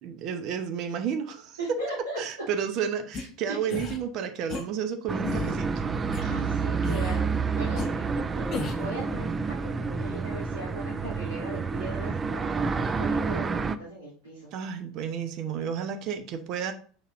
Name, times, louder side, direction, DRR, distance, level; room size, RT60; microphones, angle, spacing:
voice 1, 0.0-1.6 2.2-5.8 6.2-6.3 14.5-16.7, right 7 dB, 45° right, 8 dB, 0.9 m, -32 dB
voice 2, 1.6-2.2 3.2-3.6 6.2-7.3 7.5-14.5, right 1 dB, 70° right, -9 dB, 2.9 m, -39 dB
sound 1, 3.1-3.2 3.7-4.0 4.5-4.6 5.2-5.6 6.1-6.2 6.8-7.2 7.8-7.9 8.5-8.9, left 4 dB, 35° left, 1.5 m, -32 dB
sound 2, 5.1-13.8, right 5 dB, 20° right, 0.5 m, -29 dB
6.6 x 6.1 x 2.6 m, 0.43 s
figure-of-eight pair, 75°, 0 cm